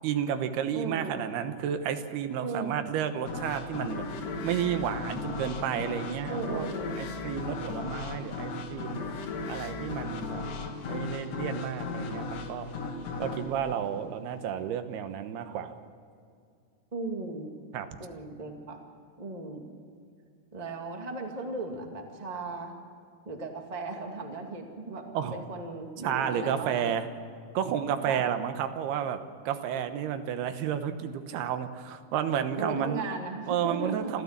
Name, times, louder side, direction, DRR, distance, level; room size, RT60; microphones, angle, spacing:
voice 1, 0.0-4.0 4.4-6.7 7.0-9.0 9.5-10.5 10.9-12.7 13.2-15.8 17.7-17.9 25.1-25.3 26.0-27.1 27.5-29.2 29.5-33.0 33.5-34.2, right 9 dB, 85° right, 9 dB, 3.1 m, -31 dB
voice 2, 0.7-1.2 2.4-2.8 6.2-7.1 16.9-17.5 18.0-18.8 19.2-19.6 20.5-22.7 23.2-26.9 28.1-28.2 32.6-34.1, right 3 dB, 20° right, 2 dB, 1.2 m, -36 dB
sound 1, 3.3-14.7, left 3 dB, 65° left, 3.5 m, -36 dB
28.0 x 13.5 x 7.4 m, 2.4 s
omnidirectional pair, 4.5 m